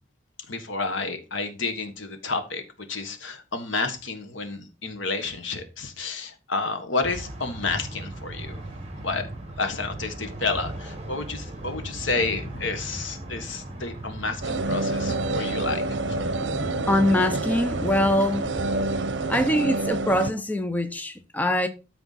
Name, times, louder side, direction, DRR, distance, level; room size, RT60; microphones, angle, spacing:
voice 1, 0.5-2.6 2.9-8.6 9.0-9.3 9.6-15.8 16.1-16.2, left 3 dB, 85° left, 1.6 m, -30 dB
sound 1, 7.0-19.4, right 1 dB, 30° right, 1.6 m, -37 dB
sound 2, 14.4-20.3, right 2 dB, 70° right, 0.8 m, -28 dB
voice 2, 16.9-18.4 19.3-21.7, left 1 dB, 10° left, 0.6 m, -23 dB
12.5 x 4.5 x 4.2 m
head